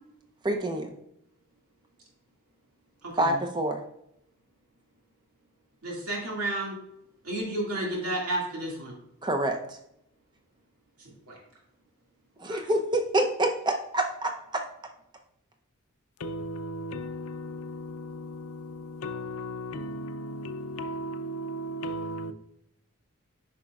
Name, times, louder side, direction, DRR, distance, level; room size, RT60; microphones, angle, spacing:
voice 1, 0.4-0.9 3.2-3.8 9.2-9.8 12.4-14.6, right 1 dB, 20° right, 0.7 m, -27 dB
voice 2, 3.0-3.3 5.8-6.8 7.2-8.9 11.0-11.4 12.5-12.7, right 1 dB, 85° right, 2.3 m, -32 dB
voice 3, 16.2-22.3, equal, 80° left, 0.6 m, -36 dB
9.3 x 5.8 x 2.4 m
head